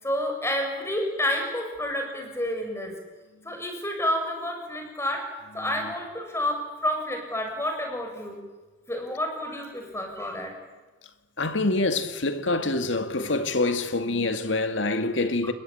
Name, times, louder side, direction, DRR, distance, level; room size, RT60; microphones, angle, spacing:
voice 1, 0.0-2.9 3.4-5.2 5.5-8.4 8.9-10.5 15.4-15.5, left 1 dB, 15° left, 7.0 m, -29 dB
voice 2, 11.4-15.5, left 2 dB, 80° left, 2.1 m, -26 dB
29.0 x 22.5 x 8.9 m
head